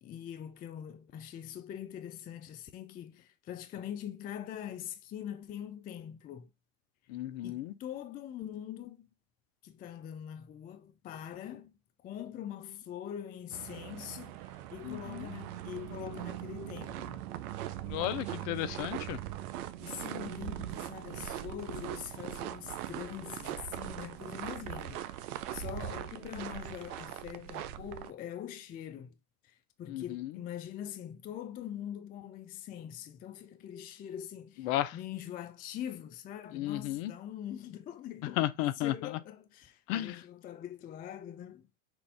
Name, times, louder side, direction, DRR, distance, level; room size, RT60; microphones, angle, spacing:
voice 1, 0.0-6.5 7.4-9.1 9.6-11.7 12.0-17.2 19.8-29.2 29.4-38.5 38.7-41.7, left 10 dB, 20° left, 0.3 m, -43 dB
voice 2, 7.1-7.7 14.8-15.3 17.9-19.2 29.9-30.3 34.6-35.0 36.5-37.1 38.4-38.9 39.9-40.2, left 14 dB, 55° left, 0.7 m, -33 dB
sound 1, 13.5-28.1, right 13 dB, 65° right, 0.7 m, -41 dB
6.1 x 2.6 x 3.3 m
hypercardioid pair, 85°, 48 cm